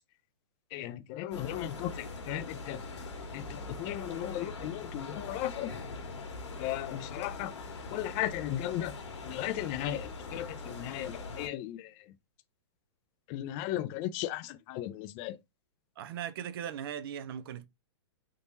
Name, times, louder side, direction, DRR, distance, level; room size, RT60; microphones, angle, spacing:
voice 1, 0.7-2.8 3.3-5.7 6.6-7.5 7.9-8.9 9.2-11.9 13.3-15.4, left 13 dB, 30° left, 0.5 m, -36 dB
sound 1, 1.3-11.5, left 3 dB, 75° left, 1.6 m, -42 dB
voice 2, 16.0-17.7, right 9 dB, 55° right, 0.6 m, -38 dB
3.7 x 2.9 x 2.6 m
hypercardioid pair, 135°, 15 cm